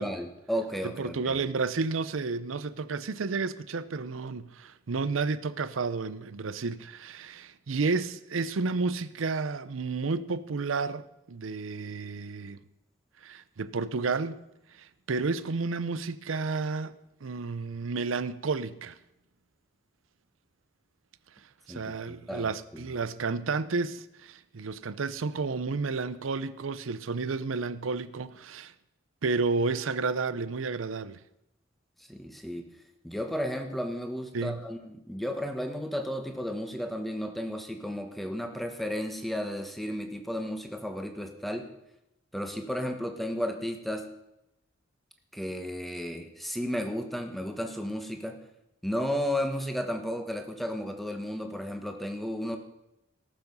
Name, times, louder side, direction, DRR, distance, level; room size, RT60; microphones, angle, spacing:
voice 1, 0.0-1.4 21.7-22.9 32.1-32.7 33.0-41.7 42.3-44.1 45.3-48.4 48.8-52.6, equal, ahead, 1.2 m, -33 dB
voice 2, 0.8-12.6 13.2-14.4 14.7-16.9 17.2-19.0 21.7-28.7 29.2-31.2 34.3-34.6, right 4 dB, 85° right, 0.6 m, -31 dB
18.0 x 7.1 x 5.5 m
head